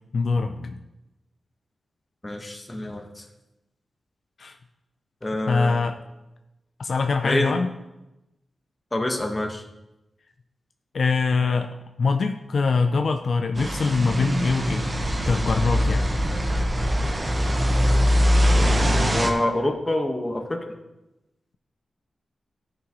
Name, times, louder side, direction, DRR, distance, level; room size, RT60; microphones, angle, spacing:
voice 1, 0.1-0.8 4.4-4.6 5.5-6.0 6.8-7.7 10.9-11.7 12.0-14.9 15.2-16.1, left 4 dB, 65° left, 6 dB, 0.5 m, -23 dB
voice 2, 2.2-3.1 5.2-5.9 7.2-7.6 8.9-9.6 19.0-20.6, left 1 dB, 20° left, 2 dB, 1.5 m, -26 dB
sound 1, 13.5-19.3, equal, 30° right, 1.2 m, -22 dB
14.0 x 6.1 x 3.1 m, 0.97 s
cardioid pair, 80°, 0 cm